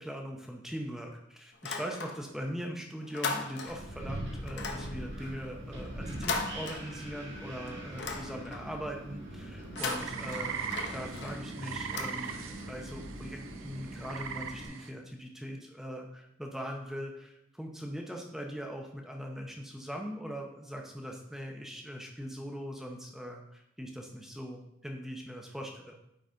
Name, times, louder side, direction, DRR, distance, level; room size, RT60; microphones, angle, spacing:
voice 1, 0.0-26.0, equal, ahead, 1 dB, 0.7 m, -41 dB
sound 1, 1.5-2.5 2.8-4.0 4.5-7.3 7.7-8.8 9.6-12.7, left 4 dB, 60° left, 0.7 m, -39 dB
Wind, 3.7-14.7, right 1 dB, 70° right, 1.8 m, -42 dB
sound 2, 9.8-14.9, right 6 dB, 85° right, 0.6 m, -40 dB
9.4 x 4.0 x 3.8 m, 0.81 s
head